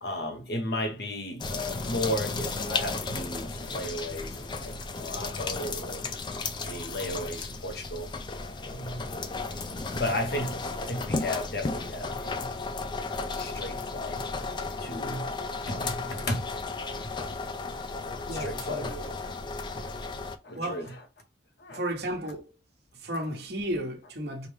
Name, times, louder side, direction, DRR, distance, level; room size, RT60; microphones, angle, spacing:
voice 1, 0.0-6.1 6.6-8.1 8.6-9.1 10.0-12.5 13.3-14.3 14.8-15.3 15.7-16.5 16.9-17.4 18.0-19.0 19.7-20.0 20.4-21.0 21.6-21.8, left 1 dB, 60° left, 0.9 m, -34 dB
sound 1, 1.4-20.4, left 3 dB, 25° left, 0.3 m, -34 dB
voice 2, 18.3-19.1 20.5-20.9 21.7-22.5 22.9-24.5, right 1 dB, 60° right, 1.0 m, -34 dB
4.9 x 2.1 x 3.2 m
head